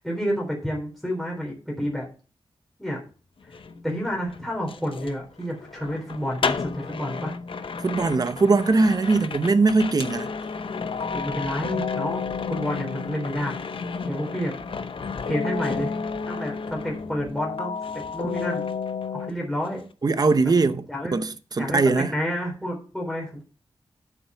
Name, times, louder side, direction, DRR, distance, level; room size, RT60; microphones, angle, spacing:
voice 1, 0.0-2.0 2.8-3.0 3.8-7.3 11.1-13.5 14.1-14.5 15.3-15.9 16.2-18.6 19.1-19.8 20.9-21.1 21.5-23.4, equal, ahead, 3.9 m, -29 dB
sound 1, 3.4-17.5 17.8-19.3 19.6-19.9, left 5 dB, 60° left, 0.8 m, -35 dB
voice 2, 7.8-10.3 20.0-20.9 21.1-22.1, right 3 dB, 40° right, 0.8 m, -21 dB
sound 2, 10.0-14.7 15.2-19.3, left 5 dB, 90° left, 0.8 m, -32 dB
8.3 x 7.2 x 5.8 m
wide cardioid pair, 125°, 10 cm